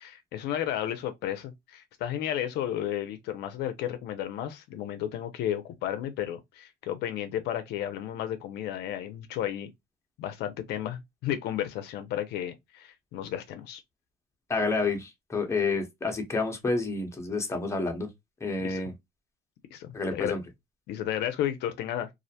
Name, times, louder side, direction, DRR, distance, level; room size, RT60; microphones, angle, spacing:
voice 1, 0.0-9.7 10.2-13.8 18.6-18.8 19.7-20.4 20.9-22.1, left 11 dB, 80° left, 0.5 m, -33 dB
voice 2, 14.5-18.1 18.4-18.9 19.9-20.4, left 3 dB, 15° left, 0.8 m, -29 dB
2.4 x 2.1 x 2.6 m
cardioid pair, 110°, 17 cm